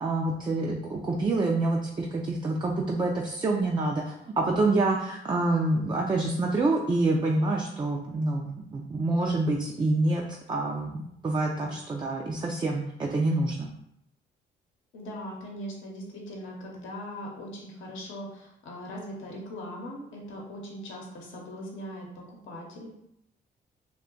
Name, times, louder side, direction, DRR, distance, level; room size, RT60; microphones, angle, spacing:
voice 1, 0.0-11.0 11.2-13.7, right 2 dB, 25° right, 0 dB, 0.4 m, -27 dB
voice 2, 14.9-22.9, equal, 80° left, -1 dB, 0.8 m, -40 dB
2.6 x 2.2 x 3.8 m, 0.78 s
cardioid pair, 90°, 20 cm